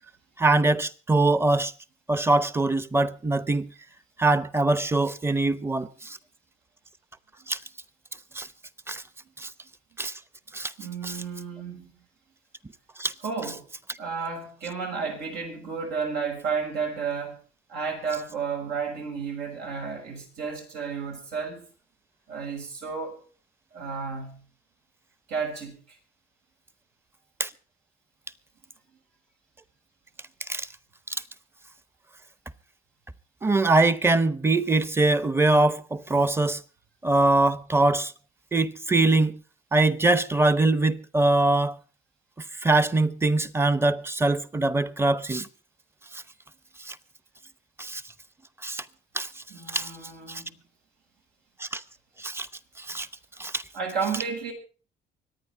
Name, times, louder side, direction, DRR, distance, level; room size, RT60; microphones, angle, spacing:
voice 1, 0.4-1.7 2.1-3.7 4.2-6.2 7.5-7.6 8.3-8.5 8.9-9.0 9.4-9.5 10.0-10.2 10.5-10.7 11.0-11.2 13.0-13.1 27.4-27.5 30.5-30.7 31.1-31.2 33.4-36.6 37.0-38.1 38.5-39.4 39.7-41.8 42.6-45.5 46.1-46.2 46.8-47.0 47.8-48.0 48.6-48.8 49.1-49.3 49.7-49.9 50.3-50.4 51.6-51.8 52.2-52.5 52.8-53.1 53.4-53.6, right 2 dB, 15° right, 0.8 m, -23 dB
voice 2, 10.8-11.9 13.2-13.7 14.0-17.3 17.7-21.6 22.3-23.2 23.7-24.4 25.3-25.8 49.5-50.6 53.7-54.5, right 5 dB, 85° right, 6.3 m, -32 dB
24.5 x 9.4 x 4.6 m
cardioid pair, 110°, 17 cm